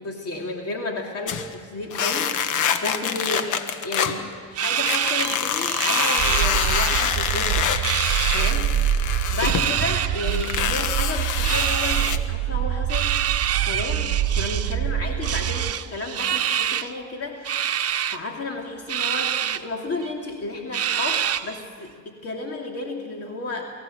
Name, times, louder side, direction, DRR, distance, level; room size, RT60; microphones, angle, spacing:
voice 1, 0.0-7.7 8.3-9.0 9.3-13.2 13.6-17.8 18.1-23.7, left 2 dB, 50° left, 1 dB, 2.6 m, -32 dB
sound 1, 1.3-1.5 1.9-4.2 4.8-9.7 10.2-12.2, left 8 dB, 80° left, 1.4 m, -26 dB
sound 2, 4.5-7.1 7.3-8.5 9.3-10.6 11.4-12.2 12.9-14.8 15.2-16.9 17.4-18.2 18.9-19.6 20.0-20.1 20.7-21.6, right 10 dB, 55° right, 0.9 m, -26 dB
sound 3, 6.2-15.7, right 11 dB, 75° right, 0.8 m, -26 dB
25.0 x 15.0 x 7.8 m, 2.1 s
cardioid pair, 90°, 30 cm